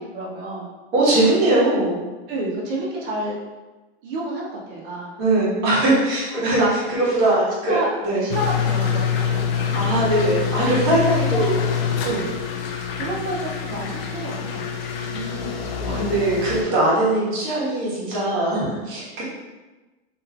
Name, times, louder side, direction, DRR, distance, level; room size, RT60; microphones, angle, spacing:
voice 1, 0.1-0.7 2.3-3.4 4.0-5.1 6.5-6.7 7.0-7.1 7.6-10.0 10.9-11.6 12.0-12.3 12.9-14.8 15.7-16.3, right 1 dB, 55° right, -4 dB, 1.0 m, -30 dB
voice 2, 0.9-2.0 5.2-6.6 6.9-7.8 8.0-8.3 9.7-11.6 15.1-19.2, right 2 dB, 40° right, -8 dB, 1.4 m, -21 dB
sound 1, 8.3-16.6, left 7 dB, 65° left, 0.5 m, -25 dB
3.1 x 2.8 x 2.4 m, 1.2 s
supercardioid pair, 145°, 32 cm